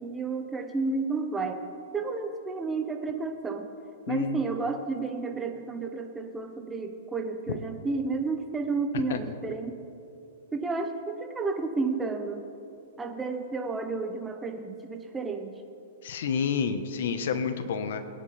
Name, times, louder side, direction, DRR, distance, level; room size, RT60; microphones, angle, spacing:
voice 1, 0.0-1.7 1.9-3.7 4.1-9.8 10.5-12.4 13.0-15.5, right 4 dB, 10° right, 5 dB, 1.2 m, -31 dB
voice 2, 4.1-4.4 7.5-7.6 9.1-9.2 16.0-18.0, left 6 dB, 70° left, 9 dB, 1.3 m, -29 dB
21.0 x 10.0 x 3.5 m, 2.7 s
hypercardioid pair, 135°, 0 cm